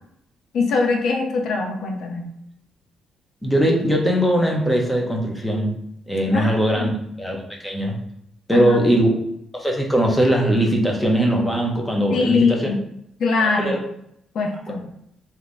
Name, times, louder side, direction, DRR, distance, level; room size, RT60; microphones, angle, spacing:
voice 1, 0.5-2.3 6.3-6.9 8.5-8.9 12.1-12.8 13.2-13.8 14.3-14.8, left 4 dB, 70° left, 2 dB, 0.8 m, -22 dB
voice 2, 3.4-5.7 6.1-6.9 7.2-8.0 8.5-9.1 9.5-12.7 13.4-13.8, equal, 5° left, 0 dB, 1.0 m, -20 dB
3.4 x 2.9 x 4.0 m, 0.75 s
cardioid pair, 90°, 0 cm